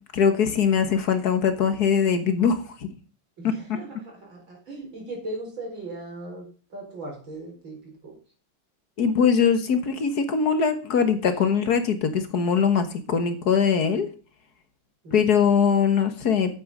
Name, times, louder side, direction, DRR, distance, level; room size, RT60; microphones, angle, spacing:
voice 1, 0.1-2.9 3.4-3.5 9.0-14.1 15.1-16.6, left 6 dB, 55° left, 9 dB, 1.7 m, -22 dB
voice 2, 3.4-8.2 15.0-15.4, right 2 dB, 75° right, 0 dB, 5.4 m, -38 dB
8.7 x 8.4 x 5.4 m, 0.38 s
omnidirectional pair, 2.2 m